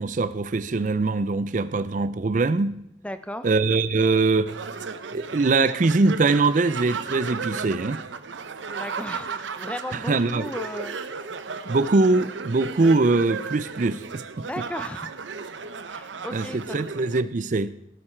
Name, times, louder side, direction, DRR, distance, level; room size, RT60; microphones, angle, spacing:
voice 1, 0.0-2.8 3.4-4.5 5.1-8.0 9.9-10.5 11.6-14.5 16.3-17.7, right 3 dB, 45° right, 0.4 m, -22 dB
voice 2, 3.0-3.5 8.8-11.0 14.4-15.1 15.9-16.8, left 1 dB, 5° left, 0.5 m, -35 dB
sound 1, 4.5-17.2, right 5 dB, 90° right, 0.7 m, -35 dB
17.5 x 8.6 x 4.4 m
head